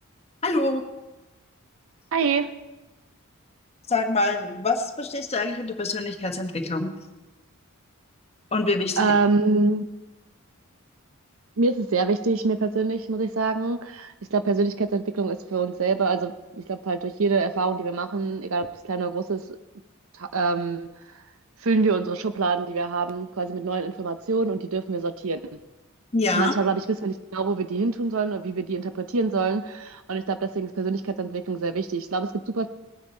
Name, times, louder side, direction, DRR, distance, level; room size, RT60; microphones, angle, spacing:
voice 1, 0.4-0.8 3.9-6.9 8.5-9.1 26.1-26.5, left 2 dB, 30° left, 4 dB, 1.2 m, -25 dB
voice 2, 2.1-2.5 9.0-9.9 11.6-19.4 20.2-20.9 21.6-25.4 26.3-32.7, right 4 dB, 70° right, 10 dB, 0.7 m, -25 dB
20.0 x 9.2 x 4.4 m, 1.1 s
head